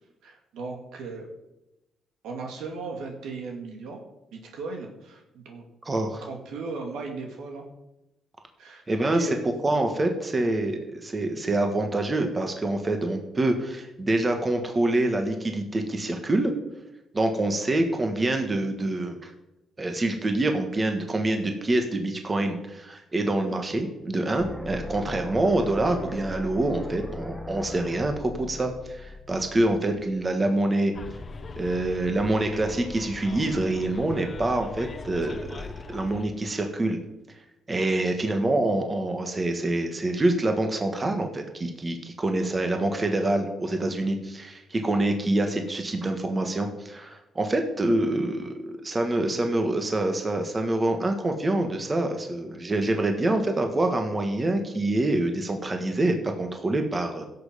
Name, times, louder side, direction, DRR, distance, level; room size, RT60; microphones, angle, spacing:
voice 1, 0.2-1.3 2.2-4.0 4.3-5.7 6.2-7.6 8.6-9.3, right 4 dB, 80° right, 2 dB, 2.2 m, -36 dB
voice 2, 5.8-6.2 8.9-9.3 9.6-16.5 17.1-19.3 19.8-30.9 31.6-37.0 37.7-57.3, right 2 dB, 25° right, 5 dB, 1.7 m, -26 dB
sound 1, 24.4-30.4, left 2 dB, 5° left, 1.4 m, -39 dB
Bus, 30.9-36.2, left 4 dB, 40° left, 0.9 m, -40 dB
16.0 x 6.7 x 5.2 m, 0.93 s
cardioid pair, 90°, 0 cm